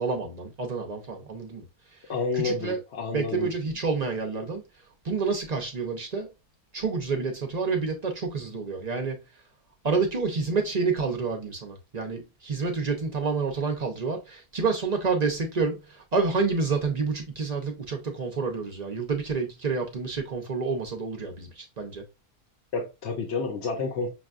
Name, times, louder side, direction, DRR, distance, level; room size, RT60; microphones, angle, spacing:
voice 1, 0.0-1.6 2.4-2.8 3.1-4.6 5.0-6.3 6.7-9.2 9.8-22.0, right 4 dB, 40° right, 0.6 m, -28 dB
voice 2, 2.1-3.5 22.7-24.1, left 4 dB, 55° left, 0.9 m, -29 dB
6.0 x 2.3 x 2.4 m
omnidirectional pair, 1.6 m